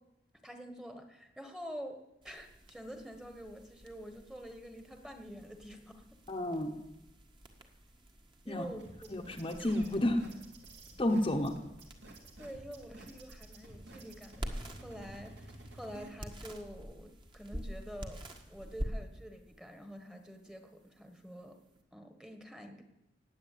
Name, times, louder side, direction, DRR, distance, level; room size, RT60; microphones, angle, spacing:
voice 1, 0.4-2.0 2.2-6.0 8.4-9.1 12.4-18.2 18.5-21.6 21.9-22.8, equal, 5° right, 5 dB, 1.5 m, -47 dB
sound 1, 2.2-21.8, equal, 25° right, 1.6 m, -48 dB
voice 2, 6.3-6.7 8.5-8.7 9.1-10.2 11.0-11.6, left 1 dB, 30° left, 2 dB, 1.1 m, -31 dB
sound 2, 8.8-16.1, right 2 dB, 65° right, 2.9 m, -52 dB
18.5 x 8.5 x 8.5 m, 0.91 s
head